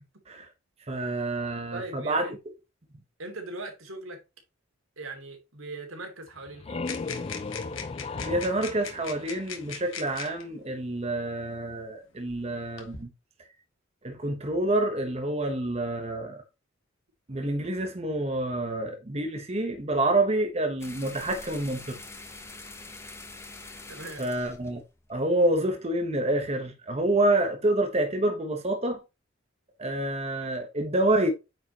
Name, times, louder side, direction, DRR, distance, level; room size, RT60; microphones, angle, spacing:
voice 1, 0.9-2.3 8.2-13.1 14.0-16.4 17.3-22.0 24.2-24.8 25.1-29.0 29.8-31.3, right 1 dB, 30° right, 1.1 m, -27 dB
voice 2, 1.7-2.4 3.2-4.2 5.0-6.8 23.9-24.2, right 2 dB, 85° right, 2.7 m, -39 dB
sound 1, 6.3-9.9, left 3 dB, 30° left, 0.4 m, -37 dB
sound 2, 6.8-10.4 11.4-11.5 12.3-13.0, left 7 dB, 80° left, 1.8 m, -40 dB
sound 3, 20.8-25.7, left 3 dB, 15° left, 1.0 m, -45 dB
9.2 x 5.0 x 3.0 m
head